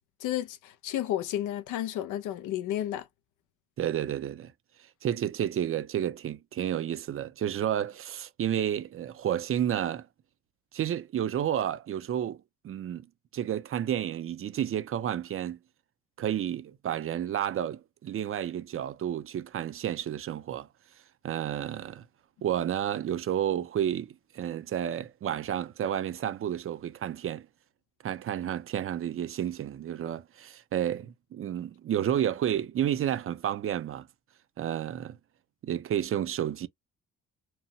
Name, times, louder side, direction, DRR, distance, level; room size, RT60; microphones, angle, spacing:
voice 1, 0.2-3.1, left 12 dB, 85° left, 0.6 m, -32 dB
voice 2, 3.8-4.5 5.0-10.1 10.7-13.1 13.3-15.6 16.2-20.7 21.2-22.0 22.4-24.1 24.3-27.5 28.0-34.1 34.6-35.2 35.6-36.7, right 10 dB, 45° right, 0.5 m, -31 dB
2.8 x 2.1 x 2.7 m
cardioid pair, 90°, 30 cm